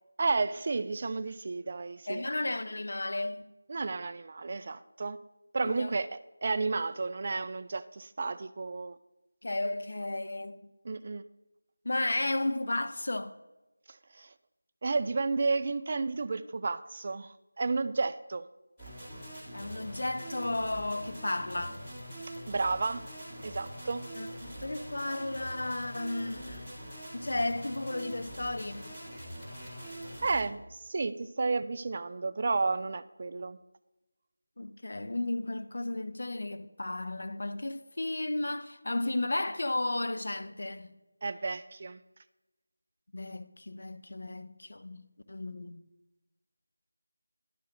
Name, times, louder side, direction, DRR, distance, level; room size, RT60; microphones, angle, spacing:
voice 1, 0.2-2.2 3.7-5.2 5.5-9.0 10.8-11.2 13.9-14.3 14.8-18.5 22.5-23.0 23.4-24.1 30.2-33.6 41.2-42.0, right 3 dB, 35° right, 0.3 m, -32 dB
voice 2, 2.1-3.4 5.6-6.0 9.4-10.7 11.8-13.3 19.5-21.8 24.2-26.7 27.1-28.9 34.6-40.9 43.1-45.8, left 2 dB, 60° left, 0.5 m, -34 dB
sound 1, 18.8-30.4, right 1 dB, 5° left, 2.2 m, -44 dB
11.0 x 5.7 x 3.7 m
figure-of-eight pair, 170°, 0 cm